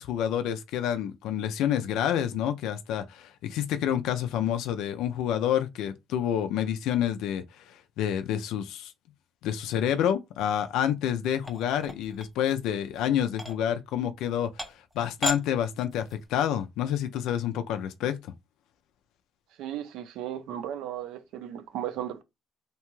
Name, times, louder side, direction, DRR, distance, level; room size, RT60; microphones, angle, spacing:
voice 1, 0.0-8.9 9.4-14.6 15.0-18.2, left 10 dB, 85° left, 0.3 m, -28 dB
sound 1, 11.4-12.7 13.3-13.6 14.2-14.3 14.6-14.9 15.2-15.4 15.8-16.3, equal, 5° right, 0.5 m, -35 dB
voice 2, 19.6-22.2, right 11 dB, 85° right, 0.4 m, -35 dB
2.8 x 2.2 x 3.0 m
cardioid pair, 135°, 0 cm